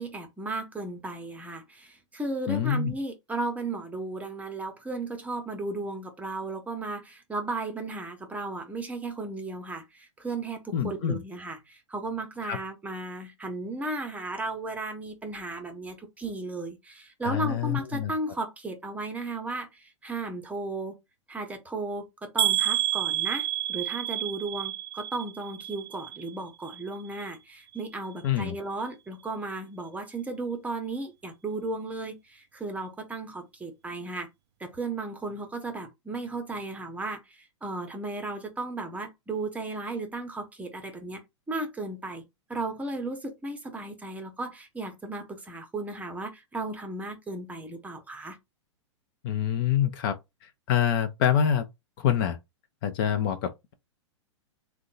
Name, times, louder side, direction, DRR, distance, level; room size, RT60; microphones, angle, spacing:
voice 1, 0.0-20.9 21.3-34.3 34.6-41.2 41.5-42.2 42.5-48.4, right 2 dB, 10° right, 0.8 m, -35 dB
voice 2, 2.5-2.9 10.7-11.2 12.4-12.6 17.2-18.1 28.2-28.6 49.2-50.2 50.4-51.6 52.0-52.4 52.8-53.7, left 9 dB, 45° left, 0.6 m, -26 dB
sound 1, 22.4-26.4 26.7-27.3 27.7-27.9 28.2-28.3, right 13 dB, 60° right, 0.4 m, -30 dB
3.6 x 2.3 x 3.9 m
figure-of-eight pair, 105°, 16 cm